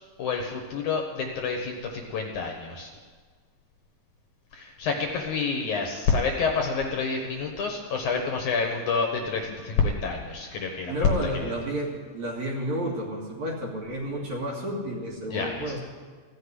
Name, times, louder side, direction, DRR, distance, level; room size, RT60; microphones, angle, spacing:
voice 1, 0.2-2.9 4.5-11.5 15.3-15.8, left 5 dB, 65° left, 2 dB, 2.1 m, -28 dB
voice 2, 10.9-15.8, equal, 55° right, -2 dB, 2.9 m, -31 dB
15.5 x 6.6 x 9.7 m, 1.5 s
omnidirectional pair, 4.4 m